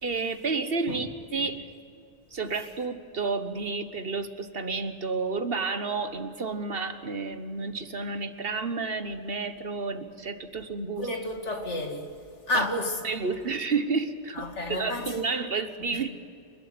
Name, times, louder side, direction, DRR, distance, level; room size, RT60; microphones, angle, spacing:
voice 1, 0.0-1.6 2.3-11.1 12.5-12.7 13.0-16.1, right 4 dB, 55° right, 1.4 m, -31 dB
voice 2, 11.0-12.1 12.5-13.0 14.3-15.1 15.9-16.0, left 1 dB, 80° left, 2.6 m, -31 dB
28.5 x 12.5 x 9.3 m
omnidirectional pair, 1.2 m